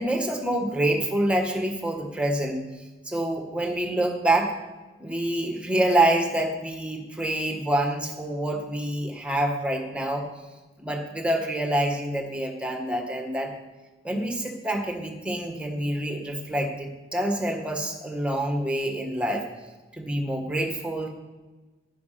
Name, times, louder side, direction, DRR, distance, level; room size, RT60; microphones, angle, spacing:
voice 1, 0.0-2.6 3.0-4.5 5.0-10.3 10.8-13.5 14.0-19.4 19.9-21.1, right 1 dB, 5° right, 3 dB, 1.6 m, -26 dB
10.0 x 10.0 x 5.9 m, 1.2 s
head